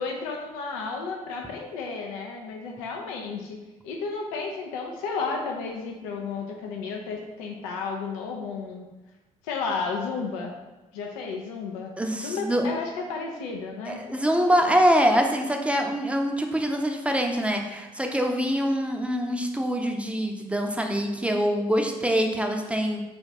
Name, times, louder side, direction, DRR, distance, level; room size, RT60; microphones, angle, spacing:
voice 1, 0.0-3.6 3.8-8.9 9.4-10.5 10.9-11.9 12.2-14.0, left 4 dB, 80° left, 1 dB, 0.4 m, -32 dB
voice 2, 12.0-12.7 13.9-23.0, equal, 5° right, 3 dB, 0.6 m, -24 dB
3.3 x 2.4 x 4.0 m, 1.1 s
hypercardioid pair, 45°, 17 cm